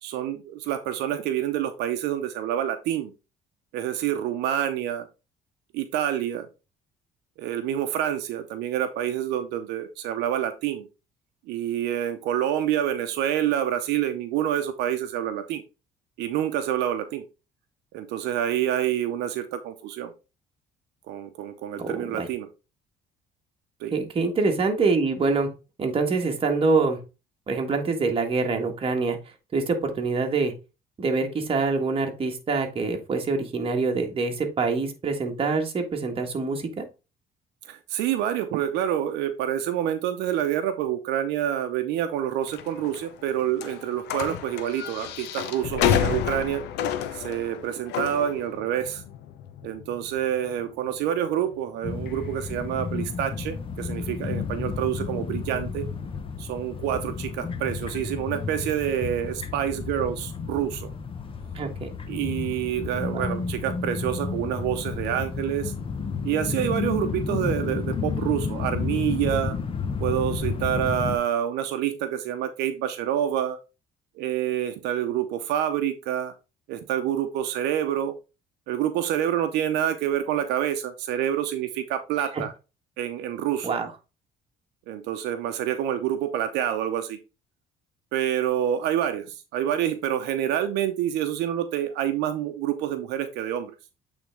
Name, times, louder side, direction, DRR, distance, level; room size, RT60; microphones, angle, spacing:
voice 1, 0.0-3.1 3.7-5.1 5.7-6.5 7.4-10.9 11.5-15.6 16.2-17.2 17.9-20.1 21.1-22.5 23.8-23.9 37.6-46.6 47.1-49.0 49.6-55.9 56.4-60.9 62.1-65.7 66.2-69.6 70.0-73.6 74.1-76.3 76.7-78.1 78.7-82.5 83.0-83.8 84.9-87.2 88.1-93.7, right 11 dB, 85° right, 8 dB, 0.7 m, -27 dB
voice 2, 21.8-22.3 23.9-25.5 25.8-27.0 27.5-29.2 29.5-30.5 31.0-36.8 61.5-61.9 82.3-82.4 83.6-83.9, right 4 dB, 35° right, 3 dB, 1.5 m, -25 dB
sound 1, 42.5-54.5, left 10 dB, 85° left, 0.8 m, -32 dB
sound 2, 51.8-71.2, left 5 dB, 30° left, 0.8 m, -31 dB
8.2 x 3.5 x 3.4 m, 0.29 s
cardioid pair, 110°, 17 cm